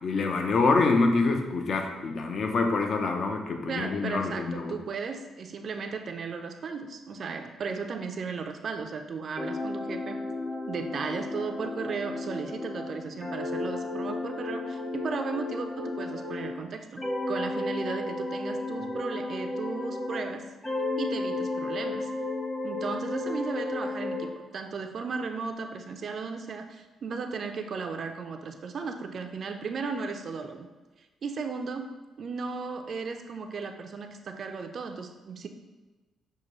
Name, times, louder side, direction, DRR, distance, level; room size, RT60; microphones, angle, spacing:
voice 1, 0.0-4.8, left 3 dB, 55° left, 4 dB, 0.5 m, -26 dB
voice 2, 3.7-10.2 10.7-17.0 17.3-20.5 21.0-22.1 22.6-30.7 31.2-35.5, right 4 dB, 50° right, 5 dB, 0.3 m, -35 dB
sound 1, 9.4-16.6 17.0-20.3 20.6-24.3, left 2 dB, 20° left, 0.9 m, -33 dB
6.5 x 2.2 x 3.0 m, 1.2 s
cardioid pair, 90°, 0 cm